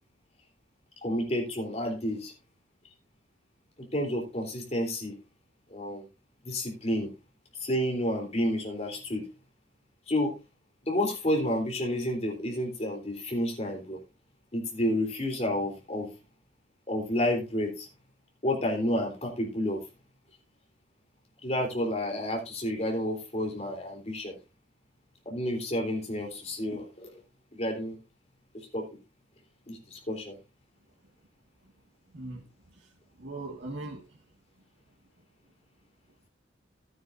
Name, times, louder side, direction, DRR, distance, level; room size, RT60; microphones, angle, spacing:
voice 1, 1.0-2.3 3.8-5.2 5.7-6.1 6.4-7.1 7.6-9.3 10.1-10.3 10.9-14.0 14.5-16.1 16.9-17.9 18.4-19.8 21.4-24.3 25.2-27.1 27.5-28.0 28.7-28.9 29.7-30.4, left 1 dB, 35° left, 1 dB, 3.4 m, -30 dB
voice 2, 32.1-32.9 33.2-34.0, right 2 dB, 70° right, -2 dB, 1.8 m, -40 dB
13.5 x 9.5 x 2.6 m, 0.26 s
head